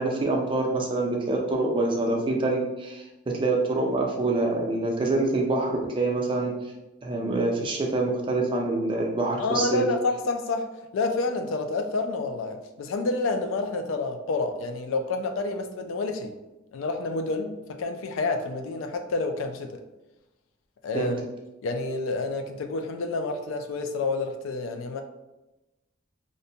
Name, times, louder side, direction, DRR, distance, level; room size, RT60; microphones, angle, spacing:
voice 1, 0.0-6.5 7.0-9.8 20.9-21.1, right 2 dB, 25° right, 0 dB, 0.4 m, -26 dB
voice 2, 9.4-10.7 10.9-16.4 16.7-19.8 20.8-21.2 21.6-25.0, left 3 dB, 75° left, 6 dB, 0.3 m, -29 dB
2.6 x 2.1 x 2.7 m, 1.0 s
head